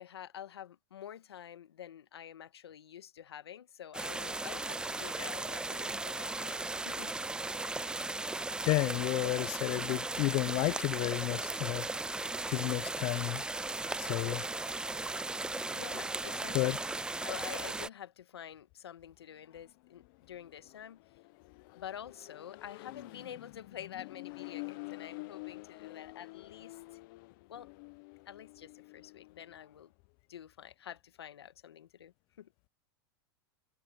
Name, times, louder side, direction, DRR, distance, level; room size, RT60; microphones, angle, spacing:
voice 1, 0.0-7.1 15.7-16.8 17.2-21.0 21.8-26.8 27.5-27.7 28.3-29.9 30.3-32.5, left 10 dB, 90° left, 1.4 m, -48 dB
sound 1, 3.9-17.9, right 2 dB, 5° right, 0.5 m, -37 dB
voice 2, 8.6-11.9 12.5-13.4 14.0-14.5 16.5-16.8, left 22 dB, 40° left, 0.4 m, -31 dB
Accelerating revving vroom, 19.4-29.8, left 26 dB, 60° left, 0.8 m, -49 dB
hypercardioid pair, 115°, 13 cm